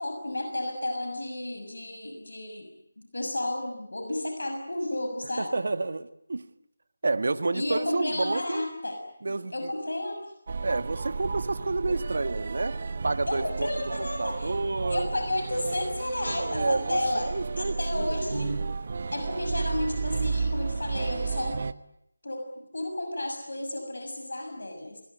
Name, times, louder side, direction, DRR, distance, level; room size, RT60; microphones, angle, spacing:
voice 1, 0.0-2.7 3.0-5.5 7.5-9.0 9.5-10.2 13.3-14.5 14.9-17.3 17.6-18.6 19.1-21.6 22.2-22.4 22.7-25.0, left 1 dB, 80° left, 6.5 m, -32 dB
voice 2, 5.4-6.5 7.0-8.7 9.2-9.7 10.6-12.8 13.0-13.7 14.0-15.1 16.4-18.2, right 3 dB, 60° right, 1.7 m, -30 dB
sound 1, 10.5-21.7, right 4 dB, 45° right, 1.1 m, -32 dB
27.0 x 22.0 x 9.3 m
figure-of-eight pair, 165°, 0 cm